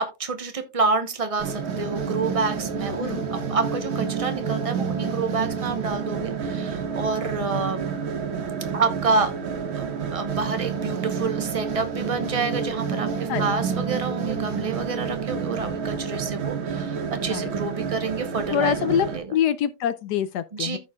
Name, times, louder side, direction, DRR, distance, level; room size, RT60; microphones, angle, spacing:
voice 1, 0.0-7.8 8.7-9.3 9.7-19.2 20.5-20.8, right 4 dB, 55° right, 0.3 m, -28 dB
sound 1, 1.4-19.2, right 6 dB, 85° right, 2.1 m, -29 dB
voice 2, 2.9-3.3 13.3-13.5 17.3-17.5 18.5-20.8, left 9 dB, 75° left, 1.0 m, -25 dB
15.0 x 5.5 x 2.3 m
omnidirectional pair, 2.2 m